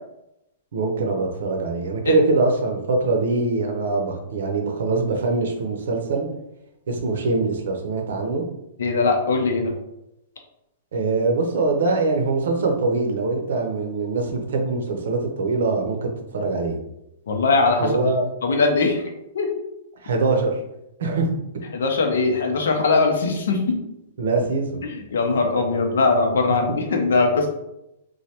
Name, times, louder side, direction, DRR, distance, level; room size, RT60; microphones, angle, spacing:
voice 1, 0.7-6.3 6.9-8.4 10.9-16.8 17.8-18.3 20.0-20.6 21.0-21.3 24.2-24.8, right 3 dB, 75° right, 3 dB, 0.6 m, -23 dB
voice 2, 8.8-9.7 17.3-17.9 18.4-19.5 21.7-23.8 24.8-27.5, left 3 dB, 90° left, 3 dB, 0.6 m, -21 dB
3.1 x 2.2 x 2.8 m, 0.86 s
hypercardioid pair, 165°, 0 cm